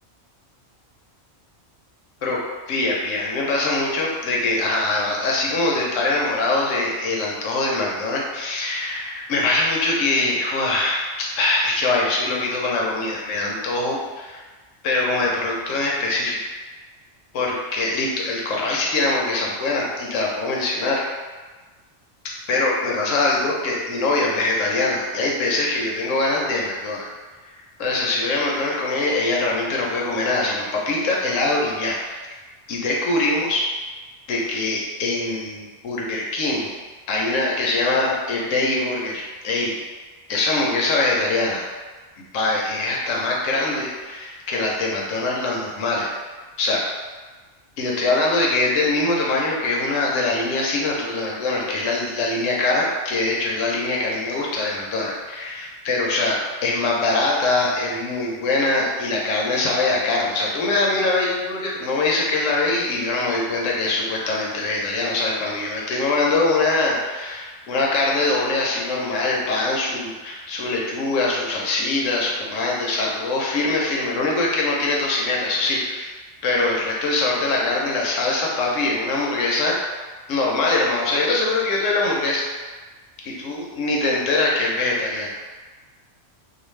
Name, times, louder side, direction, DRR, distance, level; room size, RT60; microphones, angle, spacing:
voice 1, 2.7-14.4 14.8-16.4 17.3-21.0 22.5-27.1 27.8-32.0 32.7-33.7 34.3-36.7 37.1-39.7 40.3-41.6 42.3-46.1 46.6-46.8 47.8-76.1 76.4-79.8 80.3-82.5 83.2-85.4, left 2 dB, 85° left, -2 dB, 1.0 m, -23 dB
2.4 x 2.3 x 3.1 m, 1.3 s
omnidirectional pair, 1.3 m